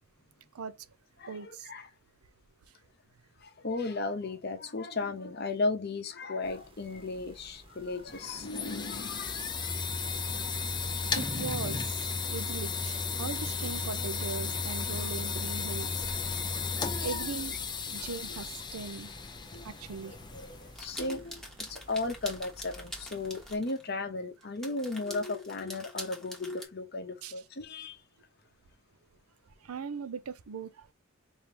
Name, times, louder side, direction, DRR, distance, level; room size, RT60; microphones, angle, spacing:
voice 1, 1.3-1.7 11.1-12.0 12.3-16.0 17.0-17.5 17.8-19.1 19.6-20.2 27.2-27.4 29.6-30.9, right 5 dB, 85° right, 0.5 m, -39 dB
voice 2, 3.4-9.7 10.0-10.8 16.4-17.1 19.5-19.7 20.0-28.0, left 3 dB, 45° left, 0.8 m, -36 dB
sound 1, 6.4-23.6, equal, 25° right, 1.0 m, -53 dB
sound 2, 8.1-20.9, left 5 dB, 20° left, 0.4 m, -34 dB
sound 3, 20.7-23.8 24.4-26.6, left 1 dB, ahead, 0.9 m, -44 dB
4.6 x 2.7 x 3.3 m
head